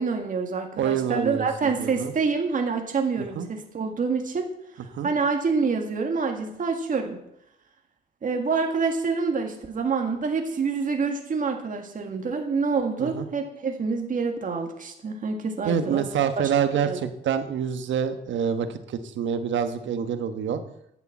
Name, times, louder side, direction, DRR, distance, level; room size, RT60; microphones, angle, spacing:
voice 1, 0.0-4.5 5.0-7.2 8.2-16.1 16.8-17.0, right 4 dB, 40° right, 3 dB, 1.9 m, -27 dB
voice 2, 0.8-2.1 3.3-3.5 4.9-5.1 13.0-13.3 15.6-20.6, right 8 dB, 70° right, 9 dB, 1.3 m, -26 dB
9.8 x 8.3 x 7.3 m, 0.78 s
cardioid pair, 90°, 20 cm